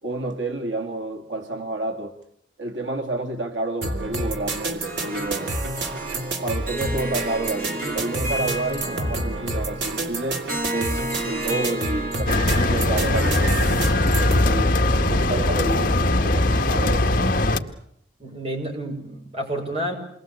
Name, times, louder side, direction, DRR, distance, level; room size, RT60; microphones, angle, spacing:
voice 1, 0.0-2.2 2.6-5.6 6.4-10.4 10.7-13.7 14.1-17.2, right 2 dB, 90° right, 2.5 m, -30 dB
sound 1, 3.8-14.5, right 2 dB, 70° right, 3.8 m, -29 dB
Harp, 4.8-13.3, right 1 dB, 50° right, 4.6 m, -33 dB
sound 2, 12.3-17.6, left 1 dB, 50° left, 1.9 m, -20 dB
voice 2, 18.2-19.9, right 1 dB, 35° right, 6.7 m, -30 dB
29.0 x 22.0 x 8.5 m
head